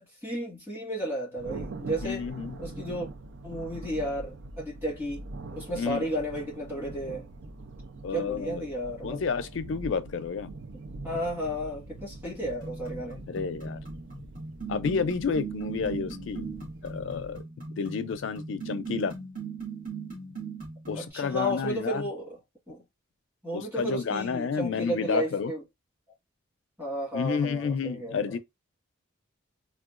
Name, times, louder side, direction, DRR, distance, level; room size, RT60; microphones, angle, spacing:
voice 1, 0.0-2.3 2.6-3.1 3.4-5.3 5.5-7.3 8.1-9.2 11.0-13.2 20.9-22.4 22.7-22.8 23.4-25.6 26.8-28.4, equal, 10° right, 1.6 m, -33 dB
Thunder, 1.4-17.4, right 2 dB, 60° right, 0.4 m, -43 dB
voice 2, 2.0-2.6 5.7-6.1 8.0-8.6 9.0-10.5 13.3-13.8 14.7-16.5 16.8-19.2 20.9-22.0 23.5-25.5 27.1-28.4, left 5 dB, 70° left, 0.4 m, -30 dB
sound 1, 12.6-21.1, right 5 dB, 40° right, 1.8 m, -39 dB
3.6 x 2.3 x 2.4 m
head